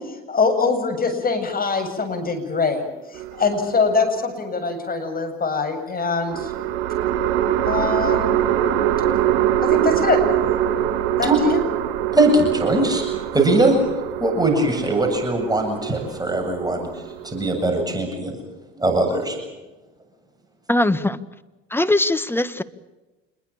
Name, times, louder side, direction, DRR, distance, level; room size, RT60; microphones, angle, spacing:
voice 1, 0.3-2.9 3.4-6.5 7.6-8.3 9.6-10.2 11.2-11.6, left 4 dB, 25° left, 6 dB, 7.9 m, -23 dB
sound 1, 3.2-4.0 6.3-17.6, right 11 dB, 65° right, 3.4 m, -23 dB
voice 2, 12.1-13.8 14.2-18.4 18.7-19.4, right 2 dB, 10° right, 3 dB, 7.9 m, -21 dB
voice 3, 20.7-21.2 21.7-22.6, left 2 dB, 5° left, 11 dB, 1.6 m, -20 dB
27.5 x 22.0 x 7.4 m, 1.1 s
hypercardioid pair, 70°, 32 cm